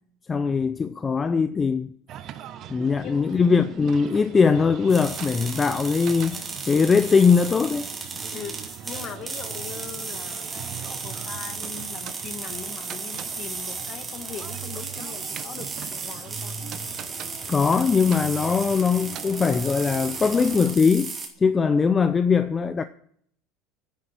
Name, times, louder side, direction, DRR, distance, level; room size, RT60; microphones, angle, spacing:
voice 1, 0.3-1.9 2.7-6.4 6.7-7.9 17.5-22.8, left 5 dB, 20° left, 0.6 m, -21 dB
sound 1, 2.1-20.8, right 10 dB, 45° right, 1.0 m, -41 dB
voice 2, 3.0-3.4 8.3-16.5, left 8 dB, 45° left, 1.5 m, -40 dB
sound 2, 4.9-21.3, right 4 dB, 20° right, 2.8 m, -35 dB
10.5 x 8.9 x 8.8 m
supercardioid pair, 120°, 0 cm